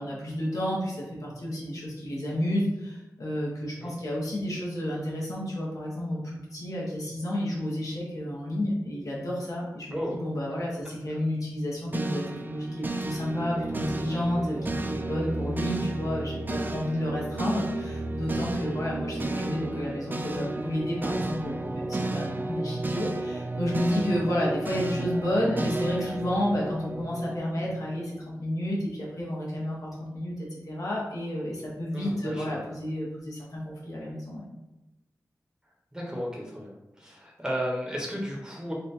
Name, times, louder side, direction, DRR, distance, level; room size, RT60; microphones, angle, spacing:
voice 1, 0.0-34.5, left 1 dB, 65° left, -5 dB, 1.1 m, -31 dB
sound 1, 11.9-28.2, right 2 dB, 30° right, 0.3 m, -32 dB
voice 2, 31.9-32.6 35.9-36.7 37.0-38.7, equal, 10° right, -2 dB, 1.1 m, -33 dB
3.9 x 2.3 x 4.2 m, 0.97 s
wide cardioid pair, 80°, 6 cm